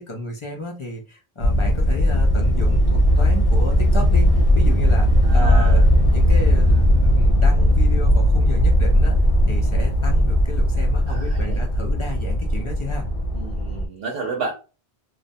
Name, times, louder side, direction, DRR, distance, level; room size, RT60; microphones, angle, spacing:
voice 1, 0.0-4.3 4.5-5.8 6.1-9.2 9.5-13.1, left 1 dB, 40° left, 1 dB, 0.5 m, -32 dB
sound 1, 1.4-13.9, equal, 70° left, 0.7 m, -17 dB
voice 2, 5.2-5.8 11.1-11.6 13.3-14.5, right 4 dB, 70° right, 0 dB, 0.7 m, -31 dB
2.5 x 2.1 x 2.6 m, 0.33 s
omnidirectional pair, 1.1 m